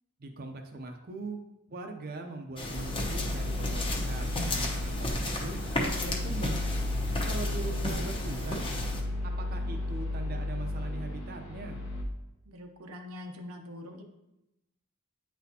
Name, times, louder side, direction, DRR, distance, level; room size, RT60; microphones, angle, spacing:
voice 1, 0.2-1.4 1.7-6.6 7.2-8.7 9.2-11.8, right 2 dB, 45° right, 4 dB, 0.6 m, -41 dB
sound 1, 2.6-9.0, left 1 dB, 25° left, 0.8 m, -34 dB
sound 2, 2.7-12.0, left 1 dB, 75° left, 1.0 m, -34 dB
voice 2, 12.5-14.0, left 1 dB, 85° right, 4 dB, 0.7 m, -44 dB
9.0 x 4.1 x 2.8 m, 0.91 s
head